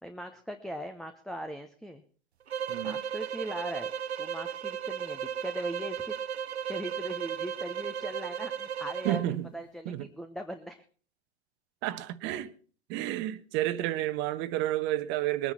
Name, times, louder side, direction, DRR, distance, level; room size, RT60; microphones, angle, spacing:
voice 1, 0.0-2.0 2.8-3.9 4.2-6.2 6.7-9.2 9.5-10.8, equal, ahead, 0.9 m, -40 dB
sound 1, 2.5-9.3, right 8 dB, 75° right, 0.8 m, -35 dB
voice 2, 2.7-3.0 9.0-9.5 9.8-10.1 11.8-12.5 12.9-15.5, right 14 dB, 35° right, 1.2 m, -31 dB
21.5 x 9.9 x 4.3 m
figure-of-eight pair, 105°, 32 cm